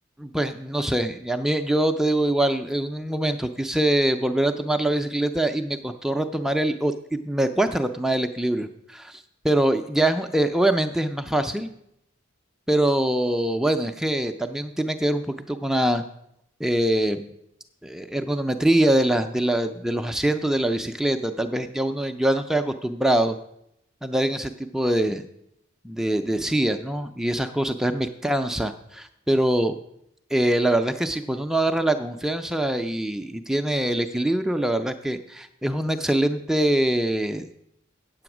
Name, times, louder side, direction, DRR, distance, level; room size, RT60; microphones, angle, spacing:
voice 1, 0.2-11.7 12.7-16.0 16.6-17.3 17.8-23.4 24.0-25.2 25.8-29.7 30.3-37.5, right 1 dB, ahead, 7 dB, 0.3 m, -24 dB
8.4 x 7.8 x 6.0 m, 0.77 s
head